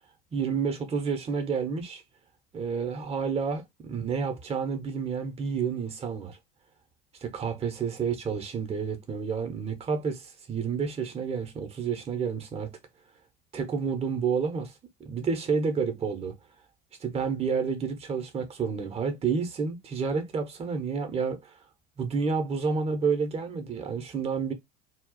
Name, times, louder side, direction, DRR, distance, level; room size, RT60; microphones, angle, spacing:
voice 1, 0.3-2.0 2.5-6.4 7.2-12.7 13.5-14.7 15.0-16.3 17.0-21.6 22.0-24.5, right 5 dB, 20° right, 0.7 m, -30 dB
2.3 x 2.0 x 3.7 m
figure-of-eight pair, 75°, 34 cm